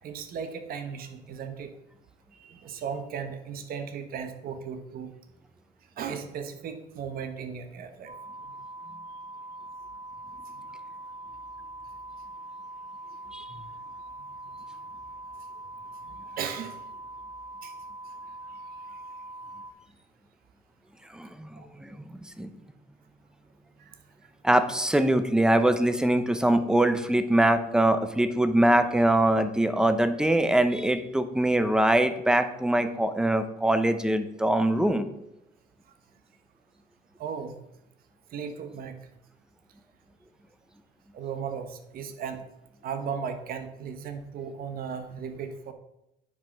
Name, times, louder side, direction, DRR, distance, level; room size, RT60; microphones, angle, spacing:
voice 1, 0.0-1.7 2.3-5.1 6.0-8.1 16.1-16.8 17.6-17.7 21.5-21.7 23.8-24.0 37.2-37.5 38.3-39.0 41.1-42.4 42.8-45.7, right 6 dB, 60° right, 8 dB, 1.2 m, -36 dB
sound 1, 8.1-19.7, right 2 dB, 30° right, 1.4 m, -42 dB
voice 2, 21.1-22.5 24.4-35.0, right 1 dB, 5° right, 10 dB, 0.8 m, -23 dB
9.4 x 5.2 x 5.9 m, 0.86 s
cardioid pair, 110°, 17 cm